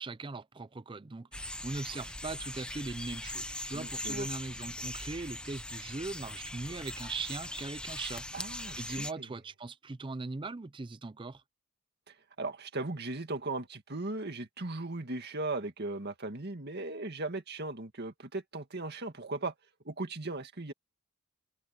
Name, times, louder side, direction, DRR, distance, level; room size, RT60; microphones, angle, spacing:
voice 1, 0.0-8.2 8.8-11.4, right 3 dB, 20° right, 0.5 m, -40 dB
sound 1, 1.3-9.1, left 1 dB, 5° left, 0.9 m, -41 dB
voice 2, 3.7-4.3 8.3-9.3 12.4-19.5 19.9-20.7, right 2 dB, 50° right, 2.0 m, -37 dB
head